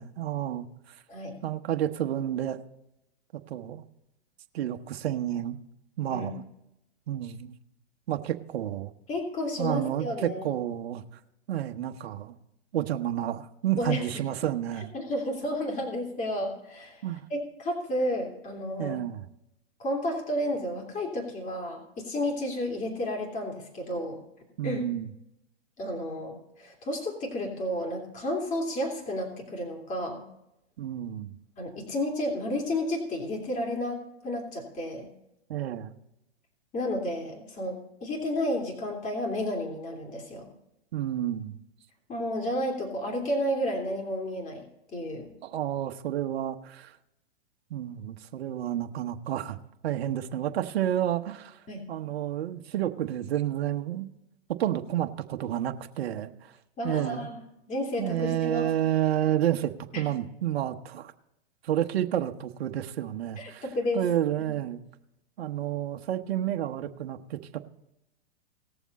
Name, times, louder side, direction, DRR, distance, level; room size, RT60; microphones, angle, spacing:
voice 1, 0.0-1.0 1.4-2.6 3.5-3.8 4.5-5.6 6.0-6.4 7.1-7.5 8.1-8.9 9.6-11.0 11.5-12.3 12.7-14.9 17.0-17.2 18.8-19.2 24.6-25.1 30.8-31.4 35.5-35.9 40.9-41.6 45.4-47.0 47.7-49.6 49.8-54.1 54.6-56.6 56.8-57.3 58.0-61.1 61.6-63.6 63.9-64.8 65.4-67.6, right 11 dB, 65° right, 6 dB, 1.1 m, -30 dB
voice 2, 9.1-10.4 13.8-14.0 14.9-17.0 17.3-18.9 19.8-24.2 24.6-24.8 25.8-30.2 31.6-35.1 36.7-40.5 42.1-44.6 44.9-45.3 51.7-51.9 56.8-57.4 57.7-58.6 59.9-60.0 63.4-64.0, left 1 dB, 25° left, 1 dB, 3.0 m, -31 dB
18.5 x 7.2 x 4.1 m, 0.85 s
hypercardioid pair, 130°, 32 cm